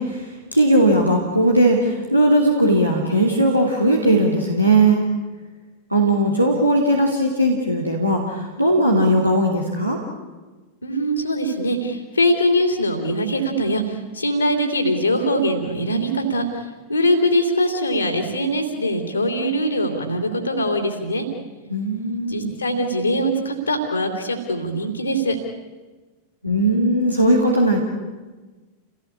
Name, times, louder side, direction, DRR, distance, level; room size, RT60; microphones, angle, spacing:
voice 1, 0.0-5.0 5.9-10.0 21.7-22.5 26.4-27.8, right 1 dB, 90° right, -1 dB, 3.0 m, -18 dB
voice 2, 10.8-21.3 22.3-25.4, equal, 80° left, 5 dB, 3.2 m, -22 dB
29.0 x 18.5 x 8.7 m, 1.3 s
figure-of-eight pair, 90°, 0 cm